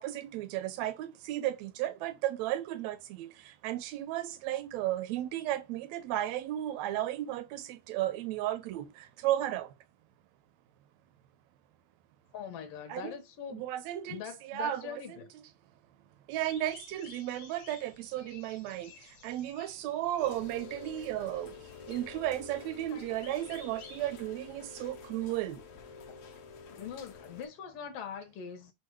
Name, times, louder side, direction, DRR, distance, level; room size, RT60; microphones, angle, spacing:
voice 1, 0.0-9.7 12.9-13.1 13.5-15.4 16.3-21.6 21.9-25.6, right 13 dB, 75° right, 1.7 m, -34 dB
voice 2, 12.3-13.7 14.1-15.3 22.9-23.1 26.7-28.7, left 8 dB, 65° left, 1.6 m, -42 dB
sound 1, 16.4-24.0, left 4 dB, 45° left, 1.6 m, -55 dB
Rain, 20.2-27.5, left 5 dB, 90° left, 1.2 m, -48 dB
6.1 x 2.3 x 3.1 m
omnidirectional pair, 3.4 m